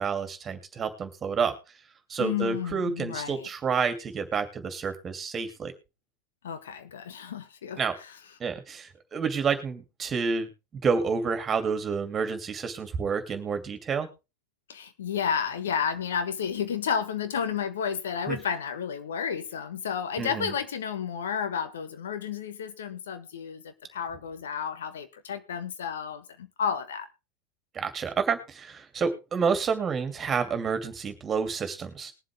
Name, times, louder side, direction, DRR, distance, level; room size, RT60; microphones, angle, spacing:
voice 1, 0.0-1.5 2.1-5.7 7.8-8.0 8.4-14.1 18.3-18.4 20.2-20.5 27.7-32.1, right 5 dB, 30° right, 2.5 m, -29 dB
voice 2, 2.2-3.5 6.4-7.8 14.7-27.1, left 7 dB, 75° left, 1.2 m, -31 dB
21.0 x 7.6 x 3.4 m
hypercardioid pair, 85°, 0 cm